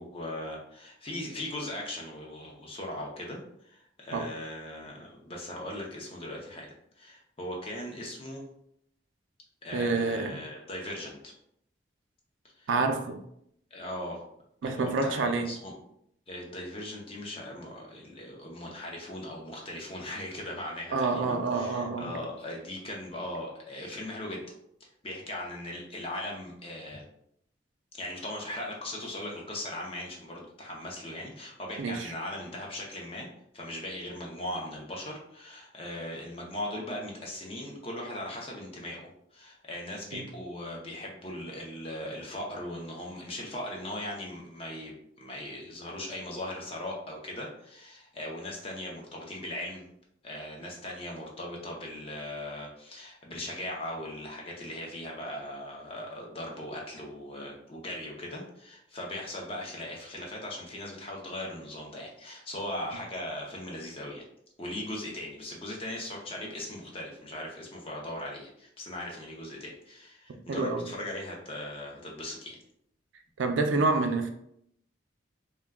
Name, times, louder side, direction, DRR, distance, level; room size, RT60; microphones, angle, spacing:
voice 1, 0.0-8.4 9.6-11.3 12.6-12.7 13.7-14.2 14.6-15.7 16.3-24.5 25.0-27.0 27.9-33.3 33.5-49.9 50.2-64.2 64.6-72.6, left 1 dB, 30° left, -1 dB, 0.5 m, -39 dB
voice 2, 9.7-10.4 12.7-13.2 14.6-15.5 20.9-22.1 31.8-32.1 40.1-40.2 70.5-70.8 73.4-74.3, right 3 dB, 80° right, 5 dB, 0.4 m, -28 dB
2.2 x 2.1 x 3.4 m, 0.73 s
head